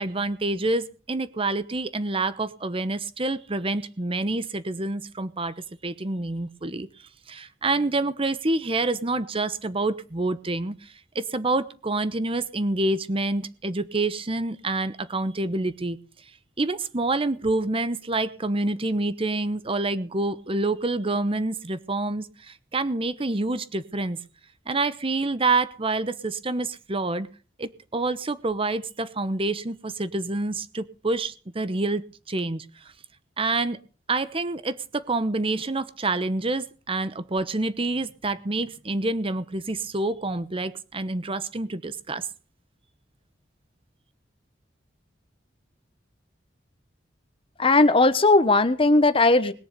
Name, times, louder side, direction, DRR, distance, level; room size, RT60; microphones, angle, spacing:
voice 1, 0.0-5.5 5.8-6.9 7.3-10.7 11.1-16.0 16.6-24.2 24.7-27.3 27.6-32.6 33.4-33.8 34.1-42.3, right 2 dB, 30° right, 14 dB, 1.0 m, -27 dB
voice 2, 47.6-49.5, left 2 dB, 30° left, 12 dB, 1.2 m, -18 dB
20.5 x 7.1 x 6.8 m, 0.39 s
head